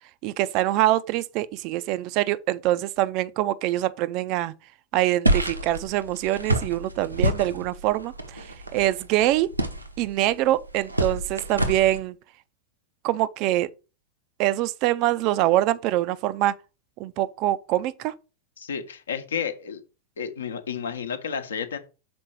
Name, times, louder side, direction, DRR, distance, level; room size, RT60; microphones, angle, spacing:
voice 1, 0.2-4.5 4.9-8.5 8.7-9.5 10.0-12.2 13.0-13.7 14.4-16.5 17.0-18.1, right 14 dB, 40° right, 0.4 m, -24 dB
sound 1, 5.2-12.0, right 1 dB, 85° right, 0.8 m, -28 dB
voice 2, 18.6-19.8 20.2-21.8, left 7 dB, 65° left, 0.9 m, -31 dB
6.0 x 4.5 x 4.5 m
figure-of-eight pair, 90°, 0 cm